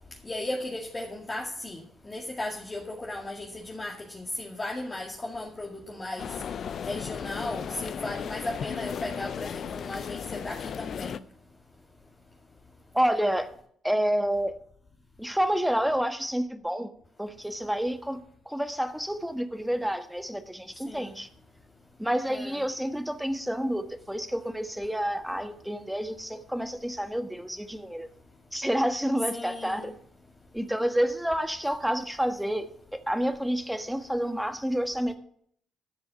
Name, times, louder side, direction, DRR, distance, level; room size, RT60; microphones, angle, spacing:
voice 1, 0.2-6.3 6.8-11.2 20.9-21.2 22.3-22.6 29.3-29.9, left 2 dB, 30° left, -2 dB, 2.2 m, -36 dB
sound 1, 6.2-11.2, left 7 dB, 55° left, 0.5 m, -35 dB
voice 2, 12.9-13.5 13.8-14.5 15.2-16.9 17.2-18.2 18.4-21.3 22.0-28.1 28.5-29.9 30.5-35.1, equal, 5° right, 8 dB, 1.4 m, -29 dB
13.5 x 6.9 x 7.0 m, 0.65 s
hypercardioid pair, 50°, 0 cm